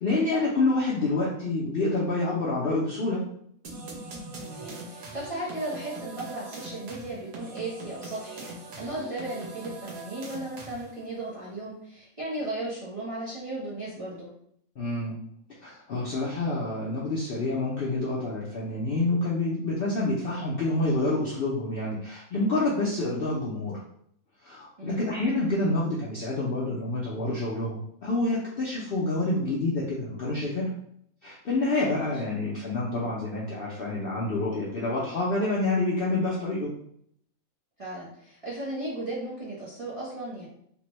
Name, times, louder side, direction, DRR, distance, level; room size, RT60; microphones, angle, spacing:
voice 1, 0.0-3.2 14.8-15.2 15.6-23.8 24.4-30.7 31.2-36.7, left 2 dB, 60° left, -5 dB, 0.6 m, -28 dB
sound 1, 3.6-11.0, right 2 dB, 75° right, 1.2 m, -41 dB
voice 2, 4.4-14.3 24.8-25.1 31.9-32.1 37.8-40.5, right 2 dB, 30° right, -8 dB, 0.7 m, -36 dB
3.3 x 2.1 x 3.0 m, 0.69 s
omnidirectional pair, 1.5 m